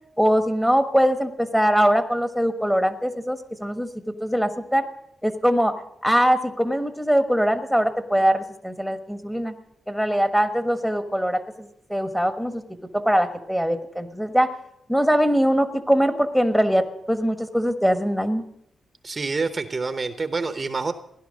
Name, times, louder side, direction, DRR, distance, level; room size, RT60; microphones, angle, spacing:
voice 1, 0.2-3.9 4.2-4.8 5.2-5.7 6.0-9.5 9.9-12.6 12.9-14.5 14.9-18.4, equal, 5° left, 8 dB, 1.3 m, -22 dB
voice 2, 19.0-20.9, right 4 dB, 30° right, 9 dB, 0.8 m, -27 dB
16.5 x 11.5 x 6.4 m, 0.76 s
cardioid pair, 115°, 0 cm